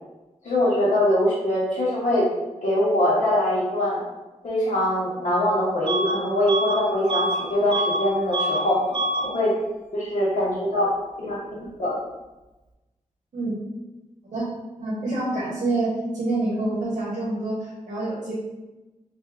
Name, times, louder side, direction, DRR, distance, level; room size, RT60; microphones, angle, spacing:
voice 1, 0.4-2.3 2.6-4.0 4.4-8.8 9.2-9.5 9.9-10.9 11.2-11.9, left 1 dB, 70° left, -6 dB, 1.0 m, -23 dB
Bus / Alarm, 5.9-6.2 6.5-8.0 8.3-8.7 8.9-9.3, right 1 dB, 35° right, 0.4 m, -26 dB
voice 2, 14.8-18.3, right 2 dB, 60° right, -6 dB, 0.8 m, -27 dB
2.6 x 2.2 x 3.4 m, 1.1 s
wide cardioid pair, 150°, 13 cm